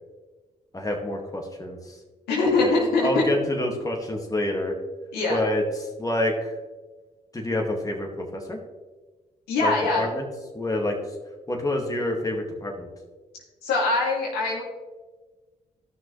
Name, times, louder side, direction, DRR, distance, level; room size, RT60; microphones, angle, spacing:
voice 1, 0.7-2.0 2.6-2.7 3.0-4.8 5.3-5.6 6.0-6.5 7.3-8.6 9.6-10.2 10.5-11.0 11.5-12.9, left 1 dB, 20° left, 1 dB, 2.1 m, -27 dB
voice 2, 2.3-3.2 5.1-5.4 9.5-10.1 13.6-14.6, left 3 dB, 85° left, -4 dB, 2.6 m, -23 dB
13.5 x 6.3 x 3.3 m, 1.3 s
supercardioid pair, 50°, 16 cm